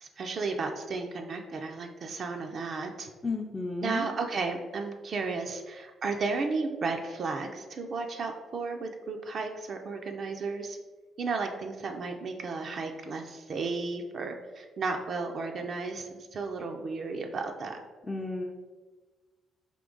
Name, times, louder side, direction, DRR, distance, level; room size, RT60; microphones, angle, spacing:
voice 1, 0.0-3.1 3.8-10.8 11.2-17.8, right 4 dB, 55° right, 4 dB, 0.4 m, -34 dB
voice 2, 3.2-4.1 18.1-18.5, left 3 dB, 15° left, 1 dB, 0.4 m, -33 dB
3.6 x 2.8 x 3.8 m, 1.3 s
cardioid pair, 90°, 0 cm